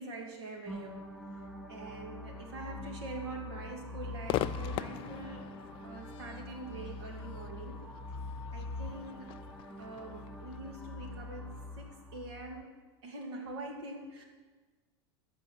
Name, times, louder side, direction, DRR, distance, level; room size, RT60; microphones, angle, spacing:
voice 1, 0.0-5.5 5.8-7.9 8.5-9.4 9.8-12.7 13.0-14.2, right 2 dB, 80° right, 2 dB, 2.5 m, -44 dB
sound 1, 0.7-12.6, left 2 dB, ahead, 2.4 m, -44 dB
Crowd / Fireworks, 4.3-11.6, left 14 dB, 40° left, 0.4 m, -42 dB
14.0 x 5.3 x 6.8 m, 1.3 s
supercardioid pair, 125°, 13 cm